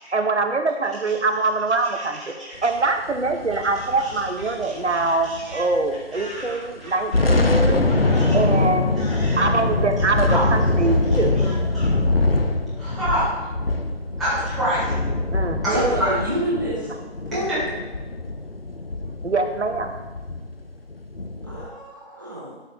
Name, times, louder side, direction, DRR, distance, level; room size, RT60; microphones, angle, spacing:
voice 1, 0.1-7.8 8.3-8.9 9.4-11.4 15.3-15.8 19.2-19.9, right 3 dB, 80° right, 6 dB, 0.9 m, -24 dB
voice 2, 1.9-2.5 4.0-4.1 4.6-5.6 6.1-7.3 7.9-8.4 9.0-9.4 10.3-10.4 11.4-11.9 12.8-13.4 14.2-15.0 15.6-15.7 16.0-16.1 17.5-17.6, equal, ahead, -14 dB, 0.8 m, -29 dB
sound 1, 3.1-5.9 6.2-6.3 6.9-21.7, left 2 dB, 60° left, 0.8 m, -23 dB
voice 3, 15.7-16.9 17.3-17.7 21.4-22.5, right 1 dB, 20° right, -7 dB, 1.5 m, -27 dB
11.5 x 5.9 x 2.9 m, 1.2 s
figure-of-eight pair, 175°, 34 cm